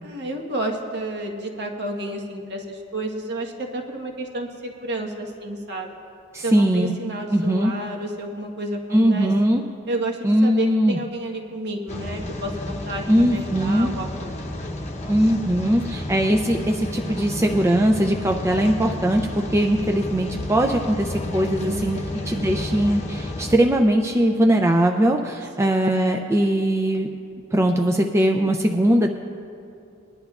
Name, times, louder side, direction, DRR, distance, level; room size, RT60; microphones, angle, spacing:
voice 1, 0.0-5.9 6.4-9.3 9.9-14.1 14.4-14.8 21.6-22.4, right 1 dB, 50° right, 1 dB, 1.2 m, -31 dB
voice 2, 6.3-7.0 7.3-7.7 8.9-9.6 10.2-11.0 13.1-13.9 15.1-22.0 22.3-27.1 27.5-29.1, right 1 dB, 15° right, 3 dB, 0.4 m, -20 dB
Rain, 11.9-23.5, left 1 dB, 30° left, 0.8 m, -31 dB
21.0 x 11.0 x 2.4 m, 2.6 s
head